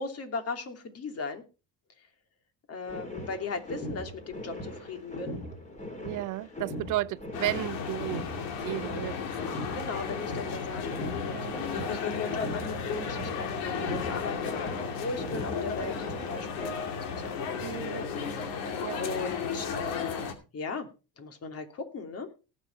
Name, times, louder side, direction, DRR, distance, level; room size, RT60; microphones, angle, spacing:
voice 1, 0.0-1.4 2.7-5.4 9.7-20.9 21.2-22.3, left 4 dB, 40° left, 2.8 m, -38 dB
sound 1, 2.9-16.7, left 1 dB, 20° left, 4.4 m, -40 dB
voice 2, 6.0-8.3 8.6-9.3 11.3-11.6 17.6-18.0 18.8-19.0, right 15 dB, 55° right, 0.7 m, -33 dB
sound 2, 7.3-20.3, left 6 dB, 80° left, 2.6 m, -34 dB
18.5 x 6.6 x 4.5 m
supercardioid pair, 105°, 36 cm